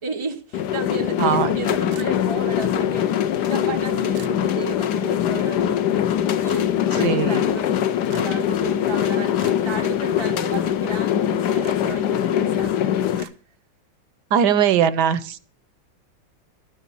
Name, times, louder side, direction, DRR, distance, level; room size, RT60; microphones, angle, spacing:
voice 1, 0.0-3.2 3.5-5.8 6.4-7.7 8.1-9.3 9.6-13.0, right 4 dB, 40° right, 0.4 m, -33 dB
sound 1, 0.5-13.2, left 10 dB, 70° left, 1.3 m, -22 dB
voice 2, 1.2-1.5 6.9-7.5 14.3-15.4, right 8 dB, 70° right, 1.2 m, -20 dB
sound 2, 1.9-2.5 4.1-4.4 6.5-6.7 8.1-8.4 9.4-9.7 11.6-11.8 13.2-13.3, right 11 dB, 90° right, 1.6 m, -41 dB
13.0 x 7.2 x 6.9 m
omnidirectional pair, 2.0 m